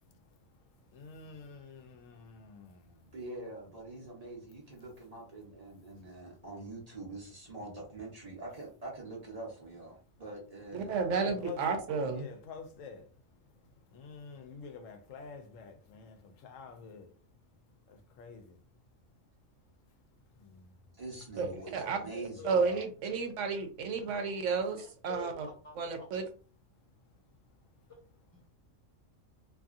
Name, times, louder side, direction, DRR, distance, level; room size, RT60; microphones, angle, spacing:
voice 1, 0.9-3.0 11.0-13.0 13.9-17.1 17.9-18.6 20.4-20.7, left 6 dB, 85° left, 1.0 m, -48 dB
voice 2, 3.1-11.0 20.9-22.8, right 2 dB, 35° right, 0.7 m, -45 dB
voice 3, 10.9-12.2 21.4-21.5 21.7-22.0 22.4-25.5 25.8-26.2, right 5 dB, 75° right, 0.9 m, -32 dB
voice 4, 21.4-21.7 22.1-22.5 24.0-24.4 24.8-26.3 27.9-28.0 28.3-28.5, left 2 dB, 30° left, 0.9 m, -49 dB
2.6 x 2.6 x 2.4 m
omnidirectional pair, 1.3 m